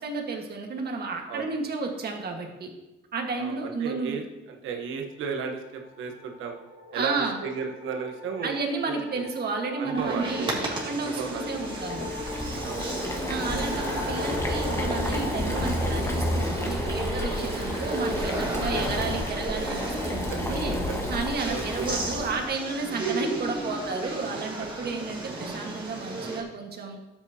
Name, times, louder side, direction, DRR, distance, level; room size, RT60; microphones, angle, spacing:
voice 1, 0.0-2.7 3.1-4.2 6.9-7.4 8.4-12.1 13.3-20.7 21.1-27.0, right 4 dB, 55° right, 2 dB, 1.7 m, -32 dB
voice 2, 3.4-6.5 6.9-8.6 8.9-9.2 9.8-10.3 10.9-11.6 12.6-13.0 18.6-18.7 20.3-20.4 20.9-21.0 21.5-21.9, right 5 dB, 85° right, 3 dB, 1.3 m, -34 dB
sound 1, 5.6-17.0, left 2 dB, 75° left, 1.8 m, -41 dB
sound 2, 9.9-26.4, right 2 dB, 25° right, 2.4 m, -34 dB
Boiling, 11.2-22.5, left 1 dB, 15° left, 1.5 m, -31 dB
12.0 x 8.1 x 2.9 m, 1.0 s
cardioid pair, 90°, 20 cm